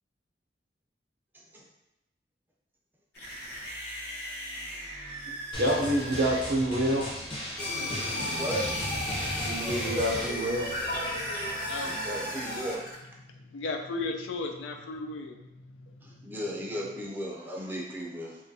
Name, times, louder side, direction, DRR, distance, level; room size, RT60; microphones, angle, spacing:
sound 1, 3.1-13.0, equal, 65° left, 0.7 m, -40 dB
Drum, 5.5-10.3, equal, 30° left, 0.7 m, -37 dB
voice 1, 5.6-7.1 9.4-10.7, right 1 dB, 60° right, -1 dB, 0.6 m, -27 dB
sound 2, 7.6-12.8, left 1 dB, 45° left, 1.2 m, -34 dB
voice 2, 8.3-8.8 11.8-12.8 16.2-18.4, equal, 10° right, -3 dB, 0.4 m, -35 dB
voice 3, 11.1-12.1 13.2-16.4, left 3 dB, 90° left, 3 dB, 0.4 m, -37 dB
2.6 x 2.3 x 2.6 m, 0.91 s
head